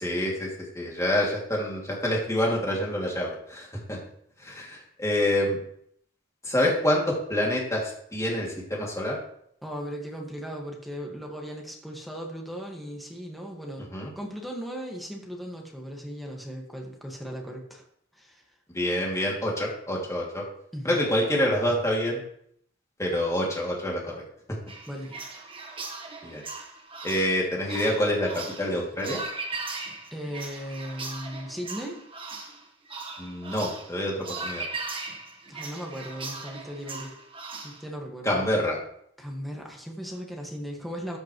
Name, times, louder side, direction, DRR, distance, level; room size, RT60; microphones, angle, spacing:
voice 1, 0.0-0.5 0.7-4.0 4.4-5.6 6.4-9.2 13.9-14.1 18.7-20.4 20.8-22.2 23.0-24.2 26.2-26.4 27.0-29.2 33.2-34.7 38.2-38.8, left 1 dB, 15° left, -3 dB, 2.7 m, -27 dB
voice 2, 9.6-13.9 14.2-17.8 18.1-18.4 20.7-21.0 24.9-25.1 30.1-32.0 35.5-37.1 37.6-38.4 39.2-41.2, equal, ahead, -1 dB, 1.8 m, -37 dB
sound 1, 24.7-37.8, right 3 dB, 25° right, 1.4 m, -38 dB
13.5 x 8.3 x 3.2 m, 0.69 s
head